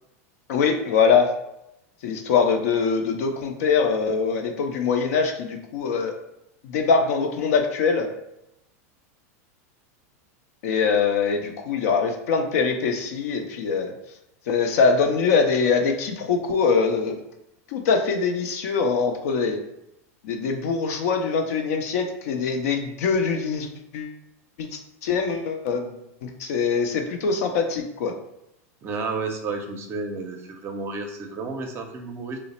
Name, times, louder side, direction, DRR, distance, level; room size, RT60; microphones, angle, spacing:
voice 1, 0.5-1.3 2.0-6.1 6.6-8.1 10.6-13.9 14.5-17.2 17.7-19.6 20.2-23.7 23.9-24.1 24.6-26.0 26.2-28.1, left 5 dB, 70° left, 4 dB, 0.6 m, -23 dB
voice 2, 28.8-32.4, right 3 dB, 30° right, 4 dB, 0.5 m, -31 dB
3.1 x 2.0 x 4.0 m, 0.83 s
supercardioid pair, 135°, 8 cm